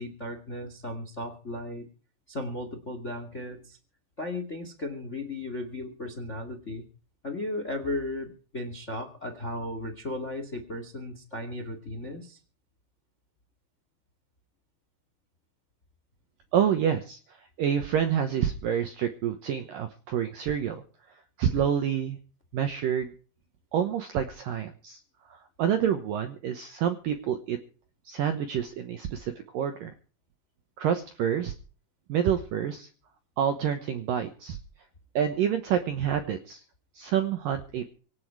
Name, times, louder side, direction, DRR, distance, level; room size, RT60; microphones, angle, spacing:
voice 1, 0.0-1.9 2.3-3.8 4.2-6.8 7.2-12.4, left 1 dB, 30° left, 7 dB, 1.3 m, -35 dB
voice 2, 16.5-17.2 17.6-20.8 21.4-22.2 22.5-23.1 23.7-25.0 25.3-27.6 28.1-29.9 30.8-31.5 32.1-32.9 33.4-34.6 35.2-36.6 37.0-38.0, right 9 dB, 75° right, 8 dB, 2.1 m, -28 dB
25.5 x 8.6 x 4.7 m, 0.40 s
omnidirectional pair, 5.3 m